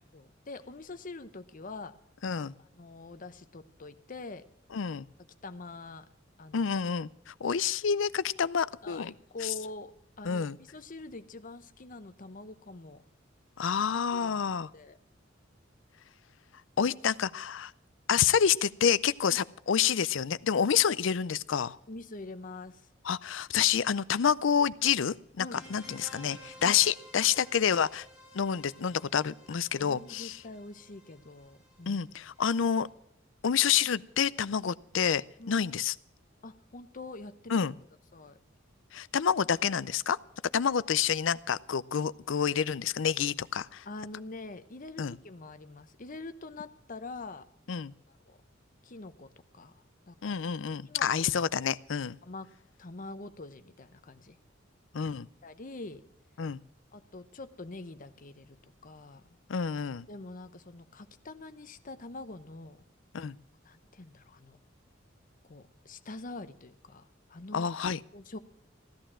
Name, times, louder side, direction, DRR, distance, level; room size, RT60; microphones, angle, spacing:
voice 1, 0.1-2.0 2.6-4.4 5.4-6.1 6.4-6.7 8.8-13.0 14.1-15.0 19.4-19.5 21.9-22.9 25.4-25.6 26.6-26.8 29.5-32.0 35.4-35.6 36.4-37.6 38.1-38.4 43.8-47.4 48.1-48.4 48.8-50.4 50.8-51.3 52.2-52.5 52.8-54.4 55.4-56.0 56.9-58.6 58.8-59.2 60.1-62.8 63.2-63.3 63.6-64.6 65.4-67.7 68.1-68.4, left 2 dB, 45° left, 10 dB, 0.9 m, -45 dB
voice 2, 2.2-2.5 4.7-5.1 6.5-9.1 9.4-9.5 10.2-10.6 13.6-14.7 16.8-17.7 18.1-21.8 23.0-28.1 28.3-30.4 31.9-32.9 33.4-35.9 37.5-37.7 38.9-40.2 40.5-43.8 45.0-45.1 47.7-47.9 50.2-52.2 54.9-55.3 56.4-56.6 59.5-60.1 63.1-63.4 67.5-68.0, left 7 dB, 70° left, 18 dB, 0.5 m, -28 dB
sound 1, 25.5-32.8, left 1 dB, 5° right, 4.8 m, -54 dB
15.5 x 11.5 x 6.2 m, 0.73 s
head